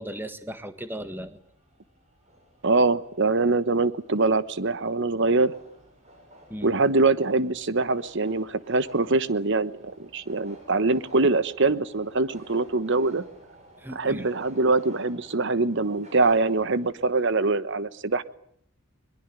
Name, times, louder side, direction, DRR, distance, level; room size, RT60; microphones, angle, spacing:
voice 1, 0.0-1.4 6.5-6.7 13.8-14.3, right 1 dB, 10° right, 10 dB, 1.6 m, -36 dB
sound 1, 0.9-17.4, equal, 35° right, 7.7 m, -52 dB
voice 2, 2.6-5.5 6.6-13.3 13.9-18.2, right 3 dB, 60° right, 14 dB, 1.2 m, -23 dB
22.5 x 22.0 x 9.1 m, 0.67 s
head